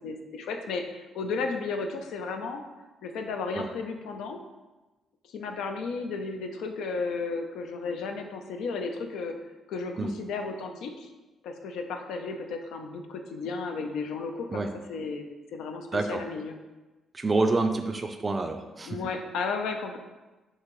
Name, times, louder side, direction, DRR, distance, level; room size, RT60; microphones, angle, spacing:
voice 1, 0.0-2.6 3.0-4.4 5.3-9.3 9.7-11.1 11.4-14.6 14.9-15.3 15.5-16.6 18.9-20.0, left 4 dB, 85° left, 5 dB, 0.5 m, -33 dB
voice 2, 15.9-16.2 17.1-19.0, right 3 dB, 30° right, 6 dB, 0.4 m, -27 dB
5.5 x 2.9 x 3.0 m, 1.2 s
cardioid pair, 90°, 0 cm